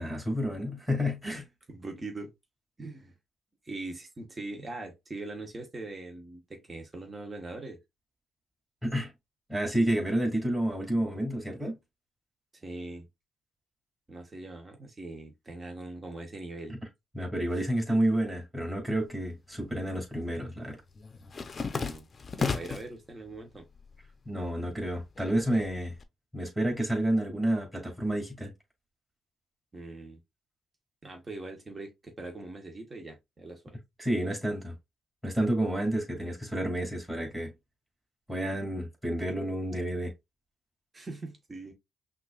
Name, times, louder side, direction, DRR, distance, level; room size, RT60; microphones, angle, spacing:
voice 1, 0.0-1.4 8.8-9.1 9.5-11.8 17.1-20.8 24.3-25.9 26.3-28.5 34.0-34.7 35.2-37.5 38.3-40.1, right 1 dB, 10° right, 2.9 m, -30 dB
voice 2, 1.7-2.3 2.8-3.1 3.6-7.8 12.5-13.1 14.1-16.8 21.7-22.1 22.4-23.7 29.7-30.2 31.0-33.8 40.9-41.7, right 2 dB, 25° right, 1.2 m, -41 dB
sound 1, 19.1-19.9 20.2-23.0 23.4-24.1 24.4-26.0, left 5 dB, 35° left, 0.7 m, -35 dB
5.7 x 2.6 x 2.5 m
cardioid pair, 90°, 0 cm